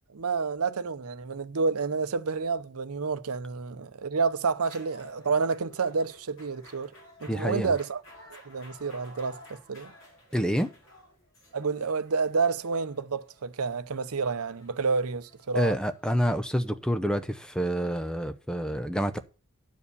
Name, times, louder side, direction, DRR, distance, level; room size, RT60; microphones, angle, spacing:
voice 1, 0.1-6.9 7.2-8.0 8.5-9.9 11.5-15.8, right 4 dB, 80° right, 0.7 m, -29 dB
sound 1, 4.6-16.6, equal, 60° left, 5.2 m, -53 dB
voice 2, 7.3-7.7 10.3-10.7 15.5-19.2, equal, 5° left, 0.6 m, -28 dB
11.0 x 4.9 x 6.8 m
head